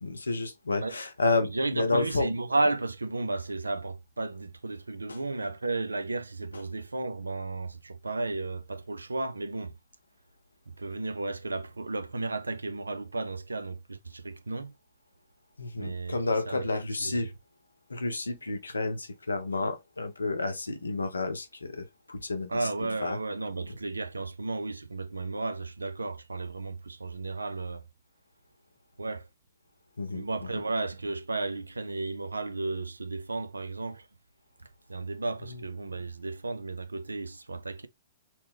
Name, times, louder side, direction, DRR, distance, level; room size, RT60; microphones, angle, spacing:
voice 1, 0.0-2.3 5.1-5.2 15.6-17.3 17.9-22.7 23.0-23.2 30.0-30.6 35.4-35.6, left 3 dB, 85° left, 0.6 m, -31 dB
voice 2, 1.4-9.7 10.8-14.7 15.8-16.2 16.5-17.2 22.5-27.8 29.0-29.3 30.1-34.1 34.6-37.9, right 2 dB, 85° right, 0.4 m, -33 dB
2.9 x 2.1 x 3.3 m
figure-of-eight pair, 115°, 0 cm